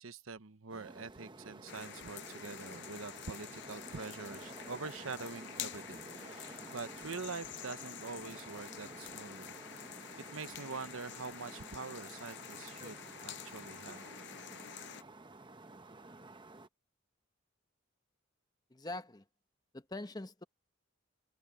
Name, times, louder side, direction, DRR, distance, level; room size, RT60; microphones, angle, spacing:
voice 1, 0.0-9.5 10.3-14.1, right 4 dB, 80° right, 1.0 m, -45 dB
sound 1, 0.7-16.7, right 2 dB, 25° right, 0.9 m, -51 dB
sound 2, 1.7-15.0, left 10 dB, 55° left, 0.6 m, -48 dB
voice 2, 18.7-19.3 19.7-20.4, left 2 dB, 20° left, 0.9 m, -43 dB
head